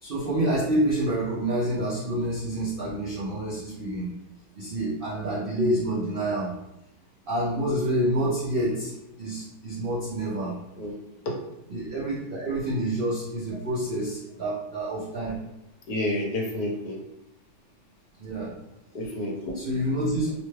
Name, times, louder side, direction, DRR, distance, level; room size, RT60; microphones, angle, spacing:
voice 1, 0.0-4.1 4.6-6.5 7.3-8.9 9.2-10.5 11.7-15.4 18.2-18.5 19.5-20.3, right 1 dB, 75° right, -7 dB, 0.5 m, -27 dB
voice 2, 15.9-17.0 18.9-19.6, left 1 dB, 70° left, -1 dB, 1.1 m, -29 dB
2.9 x 2.2 x 3.1 m, 0.90 s
omnidirectional pair, 1.8 m